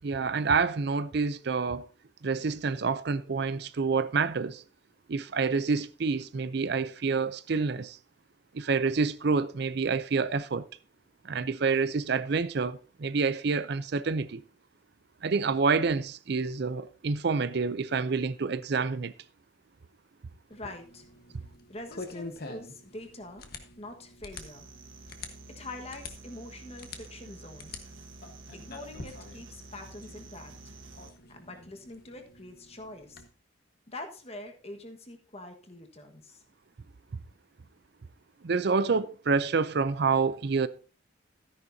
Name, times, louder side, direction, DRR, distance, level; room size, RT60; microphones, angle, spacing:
voice 1, 0.0-1.9 2.2-4.6 5.1-8.0 8.5-10.7 11.2-14.4 15.2-19.1 38.4-40.7, right 4 dB, 55° right, 0.5 m, -28 dB
sound 1, 20.5-33.3, left 3 dB, 50° left, 1.3 m, -47 dB
voice 2, 20.5-21.1 21.7-24.7 25.5-27.8 28.5-30.5 31.3-33.2 33.9-36.4, left 2 dB, 30° left, 1.4 m, -44 dB
sound 2, 24.3-31.1, right 2 dB, 80° right, 1.6 m, -49 dB
13.5 x 10.0 x 2.7 m
head